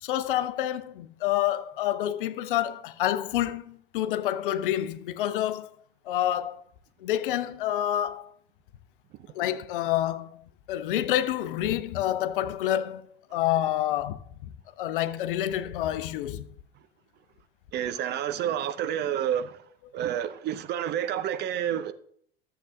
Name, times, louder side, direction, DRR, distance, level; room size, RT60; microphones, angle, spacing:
voice 1, 0.0-5.7 6.1-6.6 7.0-8.3 9.3-13.0 13.3-14.5 14.8-16.4, left 12 dB, 55° left, 0.7 m, -28 dB
voice 2, 17.7-19.6 19.9-21.9, right 10 dB, 35° right, 0.7 m, -29 dB
13.5 x 7.7 x 2.5 m
figure-of-eight pair, 75°, 31 cm